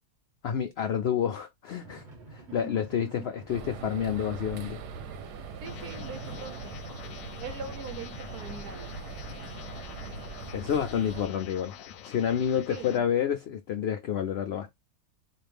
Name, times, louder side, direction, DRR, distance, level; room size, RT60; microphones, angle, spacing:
voice 1, 0.4-2.0 2.3-4.8 10.5-11.7 12.0-14.7, left 8 dB, 85° left, 0.5 m, -29 dB
sound 1, 1.7-12.2, right 2 dB, 30° right, 1.5 m, -54 dB
voice 2, 2.5-2.8 5.6-6.7 7.4-9.1 12.7-13.0, right 5 dB, 70° right, 1.4 m, -42 dB
sound 2, 3.5-11.3, right 5 dB, 90° right, 1.3 m, -41 dB
sound 3, 5.6-13.0, left 9 dB, 65° left, 0.9 m, -46 dB
4.2 x 2.4 x 3.3 m
omnidirectional pair, 1.7 m